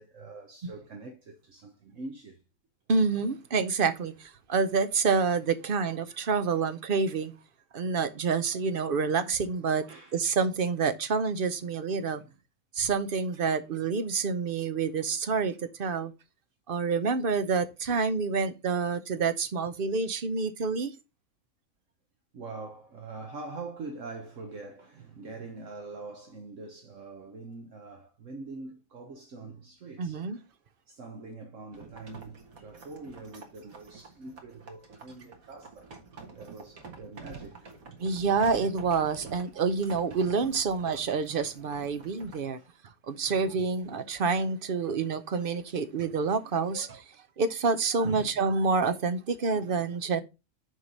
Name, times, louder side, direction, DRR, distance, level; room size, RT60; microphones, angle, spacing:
voice 1, 0.0-2.4 9.9-10.3 12.2-12.3 22.3-30.4 30.9-35.9 36.3-37.7 42.6-42.7 43.2-43.6 48.0-48.4 49.5-49.9, right 3 dB, 65° right, 1.4 m, -44 dB
voice 2, 2.9-7.3 7.7-9.9 10.1-12.2 12.7-16.1 16.7-20.9 30.0-30.4 38.0-42.6 43.1-47.0 47.4-50.2, right 4 dB, 50° right, 0.8 m, -28 dB
sound 1, 31.7-42.5, right 4 dB, 90° right, 2.0 m, -48 dB
6.5 x 4.7 x 5.4 m
omnidirectional pair, 1.4 m